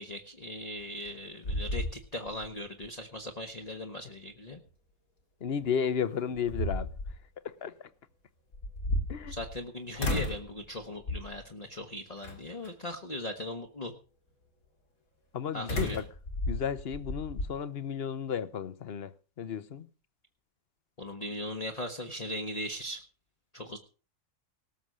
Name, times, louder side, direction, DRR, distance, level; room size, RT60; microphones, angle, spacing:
voice 1, 0.0-4.6 9.2-13.9 15.5-16.0 21.0-23.0 23.5-23.8, left 1 dB, 30° left, 1.2 m, -39 dB
sound 1, 0.8-1.2 1.4-2.5 2.8-2.9 5.6-5.7 6.3-7.2 8.5-9.6 10.0-10.5 11.1-11.4 12.2-12.7 15.7-17.5, left 1 dB, 75° left, 2.8 m, -33 dB
voice 2, 5.4-6.9 7.4-7.9 9.1-9.4 15.3-16.1 16.5-19.9, left 7 dB, 50° left, 1.0 m, -33 dB
18.5 x 7.0 x 6.3 m
omnidirectional pair, 1.5 m